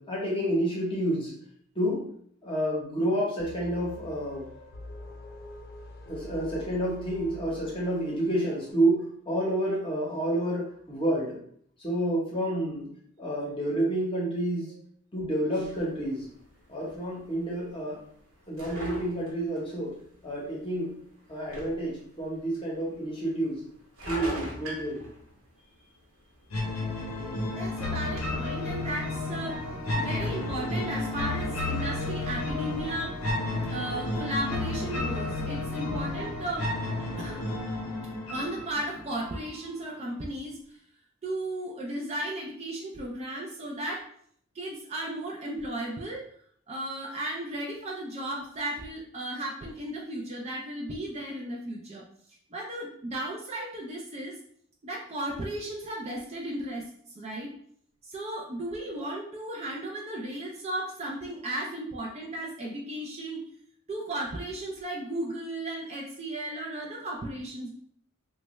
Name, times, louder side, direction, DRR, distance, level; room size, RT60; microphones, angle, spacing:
voice 1, 0.0-1.3 1.7-2.1 2.4-4.5 6.1-11.4 11.8-12.9 13.2-14.8 15.1-16.3 16.7-18.0 18.5-19.9 20.2-21.0 21.3-23.6 24.1-25.1, right 1 dB, 25° left, -4 dB, 0.8 m, -29 dB
sound 1, 3.4-8.4, right 1 dB, 45° left, 0.4 m, -44 dB
sound 2, 15.6-34.2, equal, 70° right, 1.0 m, -46 dB
sound 3, 26.5-39.5, left 2 dB, 85° left, 0.7 m, -32 dB
voice 2, 27.5-29.6 29.9-33.2 33.7-36.7 37.0-37.5 38.3-40.8 41.2-44.1 44.5-46.3 46.7-52.0 52.5-54.4 54.8-57.5 58.0-63.4 63.9-67.7, right 1 dB, 30° right, -1 dB, 0.4 m, -35 dB
3.1 x 2.2 x 3.0 m, 0.63 s
head